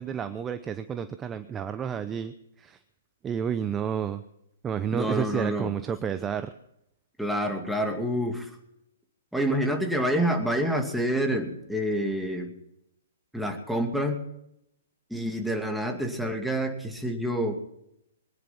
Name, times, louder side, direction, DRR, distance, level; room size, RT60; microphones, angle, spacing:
voice 1, 0.0-2.8 3.2-4.2 4.6-6.5, right 8 dB, 15° right, 10 dB, 0.8 m, -30 dB
voice 2, 4.9-5.7 7.2-8.5 9.3-12.5 13.3-14.2 15.1-17.5, equal, ahead, 2 dB, 2.5 m, -27 dB
22.5 x 10.5 x 5.9 m, 0.80 s
hypercardioid pair, 135°, 0 cm